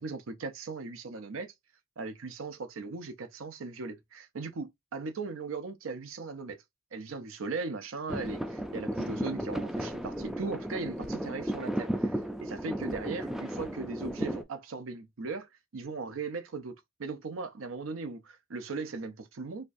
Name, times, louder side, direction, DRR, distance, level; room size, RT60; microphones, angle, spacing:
voice 1, 0.0-1.5 2.0-6.6 6.9-19.6, right 4 dB, 80° right, 0.6 m, -38 dB
sound 1, 8.1-14.4, equal, ahead, 0.4 m, -34 dB
4.3 x 2.4 x 2.5 m
head